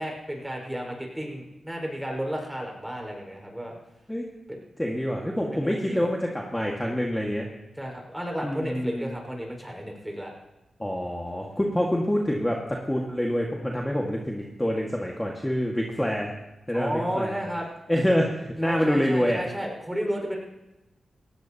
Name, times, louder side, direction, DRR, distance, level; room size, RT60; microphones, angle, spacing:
voice 1, 0.0-3.7 4.5-4.6 5.5-6.0 7.8-10.3 16.7-17.7 18.6-20.4, equal, 10° right, 1 dB, 5.2 m, -32 dB
voice 2, 4.8-7.5 8.4-9.2 10.8-16.3 16.7-17.4 17.9-19.5, equal, 10° left, -1 dB, 1.9 m, -26 dB
18.5 x 16.0 x 3.0 m, 1.0 s
cardioid pair, 50°, 0 cm